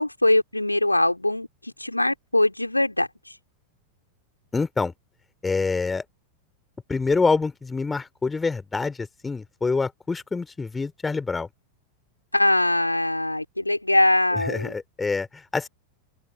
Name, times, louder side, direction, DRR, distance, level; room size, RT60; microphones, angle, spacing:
voice 1, 0.0-3.3 12.3-14.7, left 1 dB, 85° left, 3.5 m, -22 dB
voice 2, 4.5-4.9 5.4-6.0 6.9-11.5 14.3-15.7, left 4 dB, 10° left, 2.8 m, -26 dB
open air
figure-of-eight pair, 90°, 0 cm